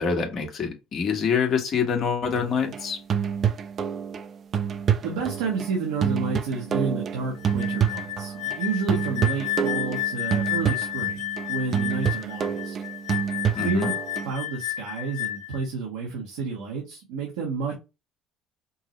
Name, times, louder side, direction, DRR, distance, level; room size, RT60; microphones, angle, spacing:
voice 1, 0.0-3.0 13.5-13.9, left 6 dB, 50° left, 1.5 m, -25 dB
sound 1, 2.4-8.6 8.9-14.3, right 8 dB, 50° right, 0.6 m, -27 dB
voice 2, 5.0-12.8 13.5-13.9 14.2-17.7, right 4 dB, 90° right, 1.3 m, -30 dB
sound 2, 7.4-15.6, left 14 dB, 80° left, 0.7 m, -32 dB
5.3 x 2.0 x 3.1 m
supercardioid pair, 80°, 0 cm